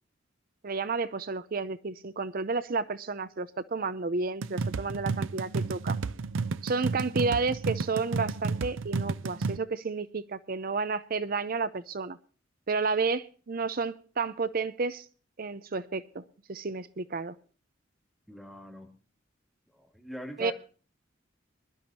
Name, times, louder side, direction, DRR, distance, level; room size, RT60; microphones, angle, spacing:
voice 1, 0.6-6.0 6.6-12.2 12.7-15.1 15.4-16.2 16.5-17.3 20.4-20.5, right 4 dB, 50° right, 14 dB, 0.6 m, -31 dB
sound 1, 4.4-9.6, right 4 dB, 85° right, 0.5 m, -32 dB
voice 2, 18.3-18.9 19.7-20.5, equal, ahead, 1 dB, 2.8 m, -42 dB
21.5 x 12.0 x 2.8 m, 0.39 s
head